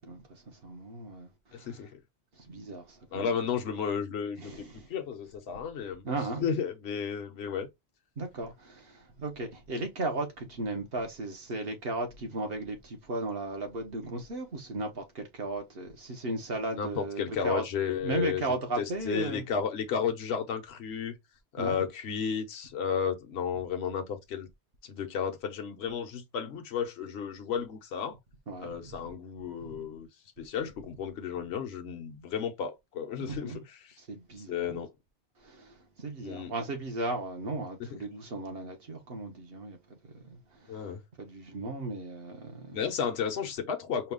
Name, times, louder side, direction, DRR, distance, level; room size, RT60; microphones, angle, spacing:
voice 1, 0.0-1.8 2.4-3.5 4.4-4.9 5.5-5.6 6.0-6.4 8.2-17.7 18.0-19.5 21.6-21.8 28.5-28.9 33.2-33.6 34.0-34.8 35.4-40.9 41.2-42.9, right 2 dB, 55° right, 1.3 m, -36 dB
voice 2, 1.5-2.0 3.1-4.6 4.9-6.0 6.4-7.7 16.7-18.4 18.8-21.2 21.5-24.5 24.8-28.1 28.6-30.1 30.4-33.5 34.5-34.9 36.2-36.5 40.7-41.0 42.7-44.1, left 7 dB, 65° left, 1.0 m, -33 dB
4.6 x 2.3 x 3.6 m
omnidirectional pair, 1.2 m